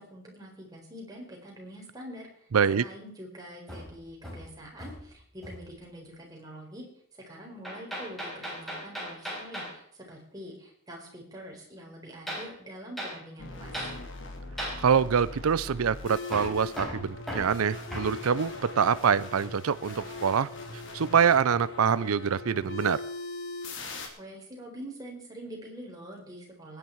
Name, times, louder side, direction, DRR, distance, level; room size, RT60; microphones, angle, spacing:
voice 1, 0.0-6.8 7.1-13.9 24.2-26.8, equal, 15° right, -1 dB, 4.3 m, -45 dB
voice 2, 2.5-2.8 14.8-20.5 20.9-23.0, right 7 dB, 90° right, 16 dB, 0.5 m, -25 dB
Hammer, 3.7-5.1 5.4-5.8 7.6-9.8 12.3-12.5 13.0-13.2 13.7-14.0 14.6-14.8 16.3-18.2, equal, ahead, 4.3 m, -37 dB
sound 1, 13.4-24.1, left 3 dB, 60° left, 2.8 m, -40 dB
20.0 x 9.8 x 4.6 m, 0.63 s
head